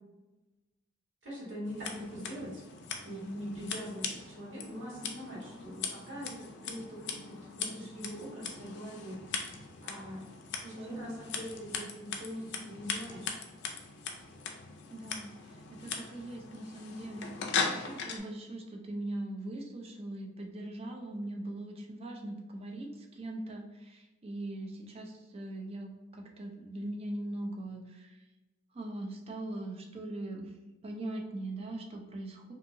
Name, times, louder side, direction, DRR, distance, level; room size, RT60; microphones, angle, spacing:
voice 1, 1.2-2.6 3.0-9.5 9.8-10.3 10.7-13.4, equal, 60° right, -5 dB, 1.2 m, -42 dB
Scissors, 1.7-18.2, left 5 dB, 55° left, 0.4 m, -40 dB
voice 2, 10.6-11.1 14.9-28.3 28.7-30.5 30.8-32.5, right 1 dB, 30° right, 2 dB, 0.4 m, -41 dB
2.7 x 2.7 x 2.5 m, 1.1 s
head